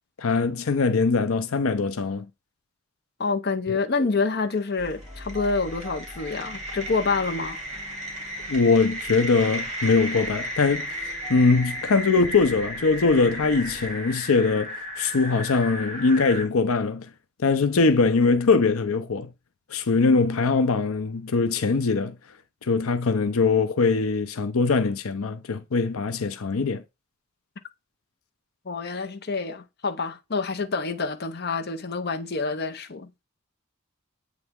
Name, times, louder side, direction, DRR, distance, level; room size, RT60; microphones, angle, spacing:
voice 1, 0.2-2.3 3.7-3.8 8.5-17.1 17.4-19.3 19.7-22.2 22.6-26.8, left 4 dB, 85° left, 0.6 m, -22 dB
voice 2, 3.2-7.6 28.7-33.2, left 4 dB, 50° left, 0.8 m, -27 dB
sound 1, 4.5-16.5, equal, 35° right, 2.6 m, -35 dB
sound 2, 4.8-13.9, equal, 10° right, 3.5 m, -45 dB
8.1 x 3.4 x 3.6 m
head